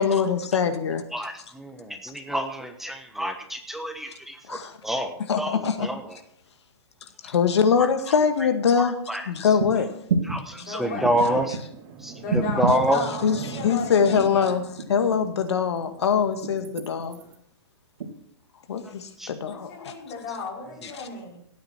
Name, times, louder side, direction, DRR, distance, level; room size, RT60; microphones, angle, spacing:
voice 1, 0.0-1.0 4.5-4.8 5.3-5.9 7.2-9.0 9.3-9.9 13.2-13.4 13.6-14.6 14.9-17.2 18.7-19.9, left 6 dB, 75° left, 7 dB, 2.0 m, -23 dB
voice 2, 2.0-6.2 7.8-7.9 8.8-9.3 10.2-11.6 12.0-13.0 19.2-19.3, equal, ahead, 6 dB, 1.1 m, -27 dB
sound 1, 9.6-9.7 10.1-10.4 11.0-11.6 12.3-12.9 13.8-14.4 14.8-15.4 16.4-17.1 18.0-18.1, right 4 dB, 65° right, 2.9 m, -28 dB
sound 2, 10.3-17.4, right 6 dB, 30° right, 1.9 m, -42 dB
voice 3, 10.5-11.1 12.1-14.6 19.5-21.4, left 4 dB, 40° left, -1 dB, 5.7 m, -34 dB
18.0 x 8.6 x 4.5 m, 0.66 s
hypercardioid pair, 140°, 14 cm